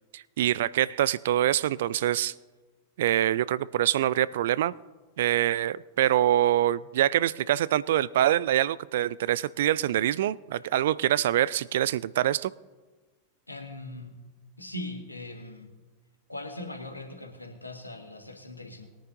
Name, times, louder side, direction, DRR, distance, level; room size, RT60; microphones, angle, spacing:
voice 1, 0.1-2.3 3.0-4.7 5.2-12.5, right 12 dB, 55° right, 21 dB, 0.3 m, -25 dB
voice 2, 13.5-14.2 14.6-15.7 16.3-18.9, left 1 dB, 85° left, 3 dB, 1.5 m, -40 dB
21.0 x 10.0 x 2.6 m, 1.3 s
figure-of-eight pair, 90°, 0 cm